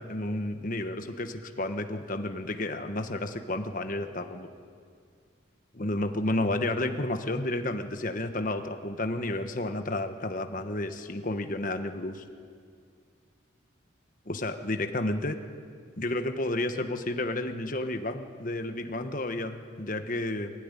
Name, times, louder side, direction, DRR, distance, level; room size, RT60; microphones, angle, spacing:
voice 1, 0.0-4.5 5.7-12.2 14.3-15.4 16.0-20.5, left 1 dB, 45° left, 7 dB, 1.3 m, -31 dB
23.5 x 16.0 x 10.0 m, 2.2 s
head